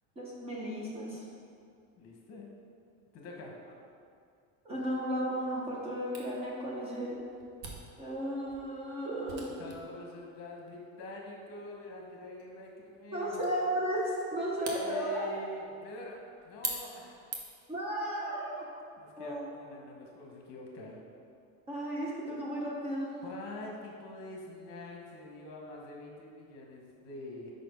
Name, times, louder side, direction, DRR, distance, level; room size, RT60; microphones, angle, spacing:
voice 1, 0.2-1.2 4.6-7.2 8.0-9.4 13.1-15.3 17.7-18.6 19.2-19.4 21.7-23.2, equal, 20° right, -5 dB, 0.6 m, -34 dB
voice 2, 2.0-2.5 3.1-3.5 9.4-13.4 14.8-17.3 19.0-21.0 23.2-27.5, left 2 dB, 45° left, -1 dB, 1.0 m, -45 dB
Camera, 6.1-17.7, right 3 dB, 45° right, 0.9 m, -46 dB
5.2 x 4.2 x 5.3 m, 2.4 s
cardioid pair, 175°, 34 cm